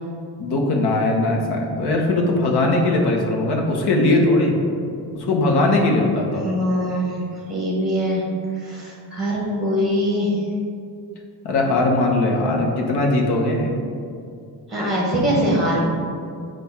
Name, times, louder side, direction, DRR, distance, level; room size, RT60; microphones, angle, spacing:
voice 1, 0.4-4.5 5.1-6.4 11.4-13.8, left 2 dB, 70° left, 1 dB, 1.1 m, -20 dB
voice 2, 6.4-7.2 7.5-8.2 8.6-10.4 14.7-15.8, equal, ahead, -4 dB, 1.3 m, -22 dB
7.5 x 2.6 x 5.8 m, 2.4 s
cardioid pair, 180°, 41 cm